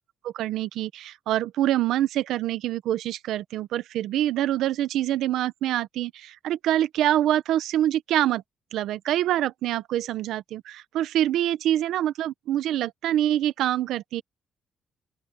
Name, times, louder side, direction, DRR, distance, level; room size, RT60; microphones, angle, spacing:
voice 1, 0.2-8.4 8.7-14.2, right 12 dB, 85° right, 0.9 m, -25 dB
open air
cardioid pair, 90°, 0 cm